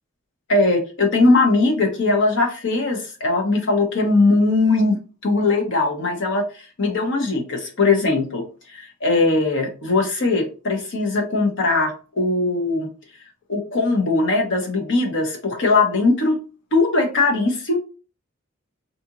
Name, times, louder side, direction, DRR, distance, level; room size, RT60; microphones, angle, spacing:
voice 1, 0.5-6.4 6.8-8.4 8.7-12.9 13.5-16.4 16.7-17.8, left 3 dB, 60° left, 2 dB, 1.0 m, -20 dB
4.2 x 2.8 x 2.5 m, 0.35 s
head